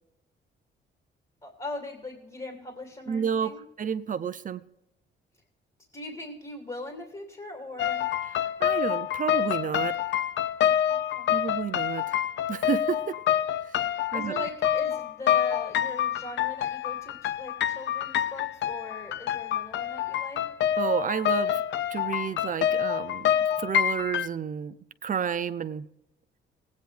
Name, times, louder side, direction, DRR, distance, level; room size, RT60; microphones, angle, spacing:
voice 1, 1.4-3.6 5.9-8.1 10.6-11.3 13.9-20.4, left 1 dB, 25° left, 2 dB, 2.7 m, -40 dB
voice 2, 3.1-3.5 3.8-4.6 8.6-9.9 11.3-12.0 12.5-13.2 13.6-13.8 14.1-14.4 20.8-21.5 21.9-23.3 23.6-24.7 25.0-25.8, right 7 dB, 40° right, 12 dB, 0.6 m, -30 dB
sound 1, 7.8-24.3, left 10 dB, 70° left, 0.6 m, -27 dB
18.0 x 9.4 x 3.4 m, 0.86 s
cardioid pair, 90°, 20 cm